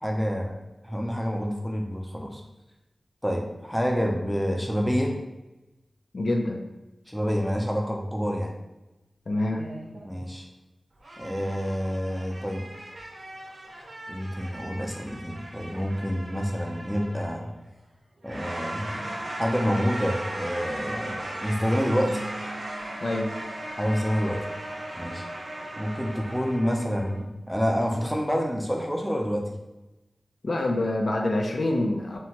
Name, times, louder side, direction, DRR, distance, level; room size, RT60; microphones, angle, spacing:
voice 1, 0.0-2.4 3.2-5.1 7.1-8.5 10.0-10.5 11.2-12.6 14.1-17.5 18.2-19.1 19.4-22.2 23.8-24.4 24.9-25.3 25.8-29.6, equal, 5° left, 0 dB, 0.5 m, -28 dB
voice 2, 6.1-6.6 9.3-9.6 23.0-23.3 30.4-32.2, left 1 dB, 75° left, 1 dB, 0.4 m, -26 dB
sound 1, 9.5-10.3 11.0-17.6 18.2-27.2, right 1 dB, 80° right, 0.6 m, -38 dB
sound 2, 22.1-24.7, right 2 dB, 55° left, 0.9 m, -43 dB
2.8 x 2.1 x 2.9 m, 0.99 s
wide cardioid pair, 55°, 0 cm